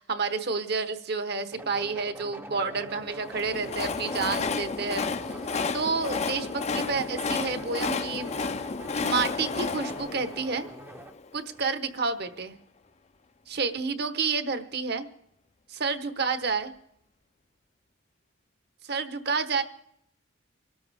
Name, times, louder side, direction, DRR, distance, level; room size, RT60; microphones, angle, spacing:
voice 1, 0.0-5.1 5.7-8.3 9.0-10.6 11.3-12.6 13.5-15.1 15.7-16.7 18.8-19.6, right 4 dB, 55° right, 10 dB, 1.1 m, -29 dB
sound 1, 1.5-11.2, right 1 dB, 10° right, 0.6 m, -45 dB
Train, 3.2-11.3, left 4 dB, 35° left, 0.5 m, -32 dB
24.5 x 13.0 x 3.5 m, 0.74 s
head